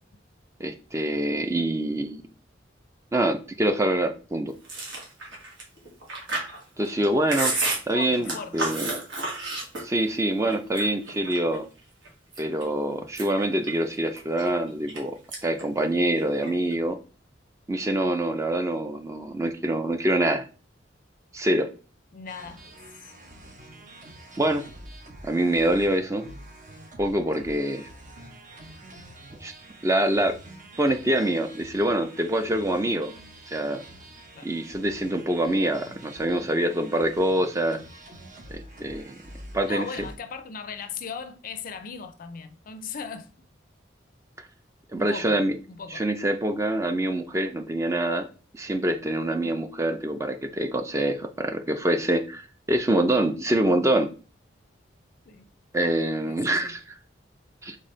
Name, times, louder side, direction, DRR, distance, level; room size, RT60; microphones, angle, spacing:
voice 1, 0.6-2.2 3.1-4.5 6.8-7.5 7.9-8.8 9.8-11.6 12.4-15.1 15.4-17.0 17.7-20.5 21.3-21.7 24.4-24.6 25.2-26.3 27.0-27.9 29.4-29.5 29.8-30.4 30.8-33.1 33.5-33.8 34.4-37.8 38.5-39.2 39.5-39.9 44.9-45.6 45.9-48.3 48.5-54.1 55.7-56.8 57.6-57.8, right 1 dB, 15° right, 0.4 m, -25 dB
Chewing mastication, 4.6-10.1 10.5-11.6 12.0-12.6 13.0-15.0 15.3-15.6 15.9-16.7, right 2 dB, 75° right, 1.5 m, -31 dB
voice 2, 7.9-8.7 22.1-22.7 23.0-23.1 34.3-34.5 39.7-43.3 45.0-45.4 45.8-46.0 55.3-55.5 56.3-56.8, left 6 dB, 45° left, 0.4 m, -38 dB
sound 1, 22.3-40.1, right 1 dB, 45° right, 0.8 m, -46 dB
4.1 x 3.6 x 3.2 m
head